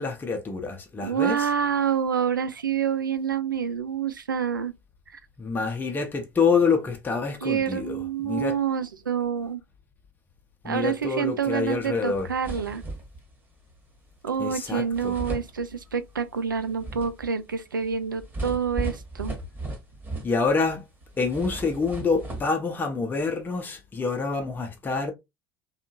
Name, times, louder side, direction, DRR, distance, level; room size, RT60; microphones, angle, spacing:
voice 1, 0.0-1.4 5.4-8.5 10.6-12.3 14.4-15.1 20.2-20.8 21.2-25.1, left 4 dB, 20° left, 0.7 m, -26 dB
voice 2, 1.0-4.7 5.1-5.2 7.4-9.6 10.6-12.8 14.2-19.3, right 7 dB, 90° right, 0.4 m, -27 dB
sound 1, 11.8-11.9 12.1-13.3 14.5-14.6 14.9-16.2 16.6-20.7 21.0-22.5, right 2 dB, 20° right, 1.3 m, -36 dB
2.7 x 2.4 x 2.7 m
hypercardioid pair, 75°, 11 cm